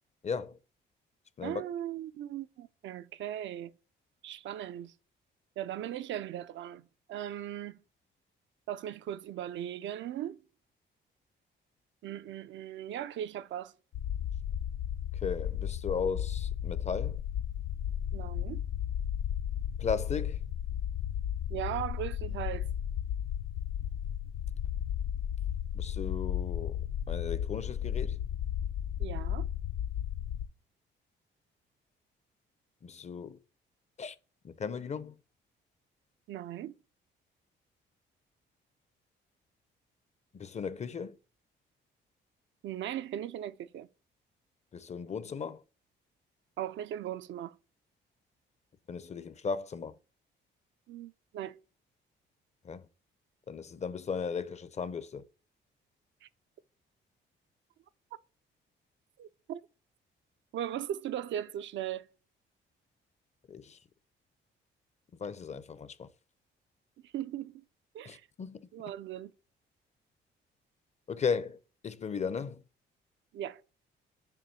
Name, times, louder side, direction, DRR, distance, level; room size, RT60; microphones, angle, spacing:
voice 1, 0.2-0.6 1.4-1.6 15.2-17.2 19.8-20.4 25.7-26.8 27.1-28.2 32.8-33.4 34.0-34.2 34.4-35.1 40.3-41.2 44.7-45.6 48.9-49.9 52.6-52.8 53.5-55.2 63.5-63.8 65.2-66.1 68.0-68.6 71.1-71.6 71.8-72.6, left 6 dB, 35° left, 0.5 m, -36 dB
voice 2, 1.4-3.7 4.2-4.9 5.6-7.8 8.7-10.4 12.0-13.7 18.1-18.6 21.5-22.7 29.0-29.5 36.3-36.7 42.6-43.9 46.6-47.6 50.9-51.6 56.2-56.3 59.2-59.6 60.5-62.1 67.0-67.6 67.9-68.2 68.7-69.3 73.3-73.8, right 11 dB, 70° right, 0.5 m, -38 dB
sound 1, 13.9-30.5, left 10 dB, 85° left, 0.5 m, -34 dB
6.8 x 3.0 x 5.6 m
cardioid pair, 90°, 20 cm